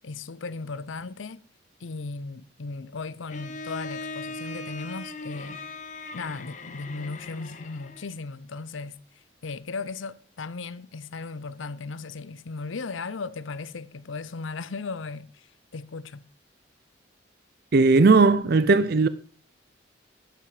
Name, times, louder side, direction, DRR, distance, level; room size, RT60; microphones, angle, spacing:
voice 1, 0.0-1.4 1.8-5.6 6.1-9.0 9.4-16.2, left 4 dB, 85° left, 0.7 m, -36 dB
Bowed string instrument, 3.3-8.2, left 3 dB, 40° left, 1.3 m, -39 dB
voice 2, 17.7-19.1, right 3 dB, 55° right, 0.5 m, -17 dB
11.5 x 11.5 x 4.9 m
head